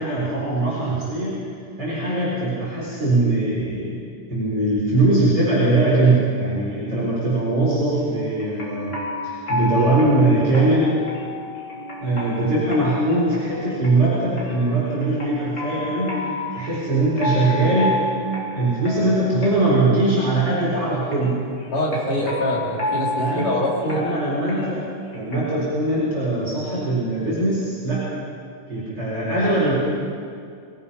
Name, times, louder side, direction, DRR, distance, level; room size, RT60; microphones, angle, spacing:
voice 1, 0.0-1.4 1.8-4.0 4.3-9.0 9.2-11.0 12.0-18.1 18.5-21.4 23.2-23.5 23.9-24.9 25.1-28.1 28.7-29.8, right 2 dB, 40° right, -9 dB, 5.7 m, -21 dB
sound 1, 8.0-25.6, left 2 dB, 30° left, 5.0 m, -31 dB
voice 2, 21.7-24.0, left 1 dB, 70° left, -3 dB, 5.1 m, -24 dB
26.0 x 19.0 x 5.7 m, 2.3 s
omnidirectional pair, 3.7 m